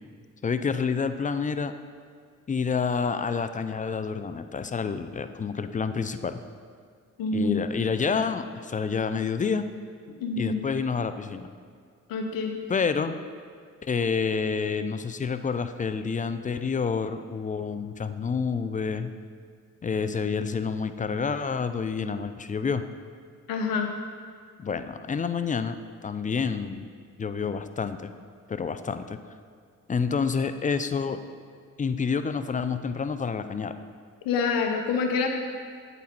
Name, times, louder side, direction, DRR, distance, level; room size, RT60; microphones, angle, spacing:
voice 1, 0.4-1.7 2.5-6.4 7.3-9.6 10.3-11.5 12.7-13.2 13.8-19.1 19.8-22.8 24.6-26.9 27.2-28.1 28.5-29.2 29.9-31.2 31.8-33.8, left 5 dB, 25° left, 10 dB, 0.3 m, -28 dB
voice 2, 7.2-7.6 10.2-10.6 12.1-12.6 23.5-23.9 34.2-35.3, left 4 dB, 85° left, 4 dB, 0.8 m, -26 dB
8.3 x 4.1 x 4.3 m, 2.1 s
supercardioid pair, 60°, 33 cm